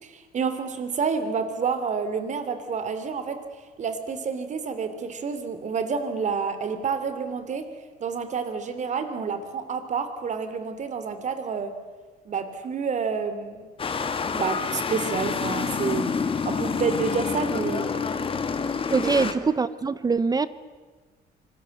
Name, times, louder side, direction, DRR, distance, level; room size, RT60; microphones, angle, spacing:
voice 1, 0.0-3.4 3.8-7.6 8.0-11.7 12.2-13.7 14.3-16.1 16.4-18.0 19.0-19.1, right 5 dB, 45° right, 10 dB, 3.1 m, -29 dB
sound 1, 13.8-19.3, left 5 dB, 30° left, 1.9 m, -28 dB
voice 2, 18.9-20.5, right 4 dB, 20° right, 16 dB, 0.8 m, -23 dB
26.0 x 20.5 x 8.0 m, 1.3 s
cardioid pair, 110°, 17 cm